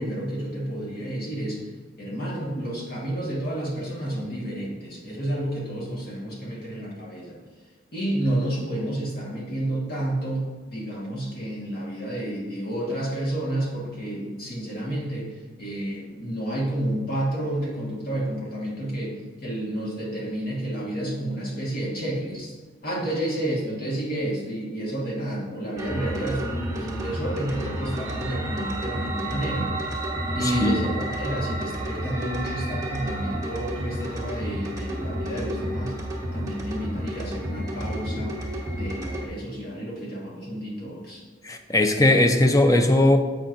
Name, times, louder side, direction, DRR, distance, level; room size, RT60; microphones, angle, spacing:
voice 1, 0.0-1.7 2.0-7.4 7.9-22.5 22.8-29.7 30.3-36.0 36.3-38.4 38.7-41.2, right 1 dB, 55° left, -4 dB, 1.5 m, -30 dB
sound 1, 25.8-39.3, right 1 dB, 20° right, 1.0 m, -31 dB
voice 2, 41.4-43.2, left 1 dB, 20° left, 5 dB, 0.4 m, -18 dB
7.6 x 5.8 x 2.5 m, 1.4 s
head